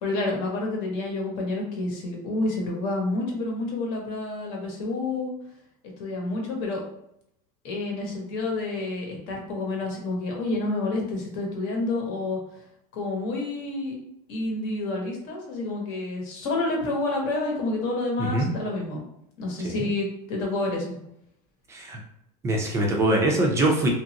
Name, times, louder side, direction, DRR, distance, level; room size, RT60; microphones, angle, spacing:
voice 1, 0.0-5.3 6.0-6.8 7.6-12.4 12.9-13.9 14.3-19.0 19.4-21.0, left 2 dB, 55° left, 0 dB, 1.0 m, -29 dB
voice 2, 22.4-23.9, right 1 dB, 15° right, -1 dB, 0.5 m, -23 dB
2.9 x 2.5 x 2.8 m, 0.76 s
supercardioid pair, 150°, 19 cm